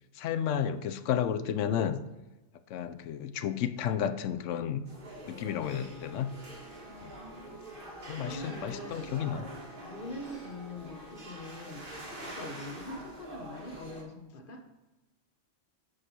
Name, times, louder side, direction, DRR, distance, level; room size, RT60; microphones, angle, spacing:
voice 1, 0.2-2.0 2.7-4.8 5.3-6.3 7.0-7.1 8.1-9.4, left 9 dB, 85° left, 11 dB, 1.0 m, -32 dB
sound 1, 4.8-14.0, right 1 dB, 50° right, 1.8 m, -45 dB
Wind instrument woodwind instrument, 5.3-12.0, equal, 25° left, 1.8 m, -56 dB
voice 2, 6.9-9.1 9.8-14.6, left 1 dB, 45° left, 4 dB, 1.2 m, -44 dB
8.6 x 4.8 x 6.2 m, 1.1 s
omnidirectional pair, 1.2 m